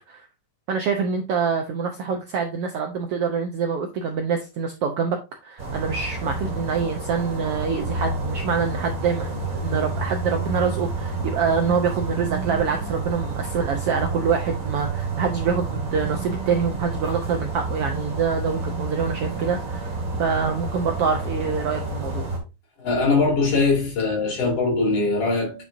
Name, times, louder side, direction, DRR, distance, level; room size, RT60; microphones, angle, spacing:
voice 1, 0.7-5.2 5.4-22.3, right 6 dB, 70° right, 1.5 m, -25 dB
sound 1, 5.6-22.4, right 3 dB, 30° right, 2.8 m, -29 dB
voice 2, 22.8-25.6, left 3 dB, 50° left, 4.0 m, -21 dB
9.0 x 6.1 x 2.7 m
omnidirectional pair, 3.5 m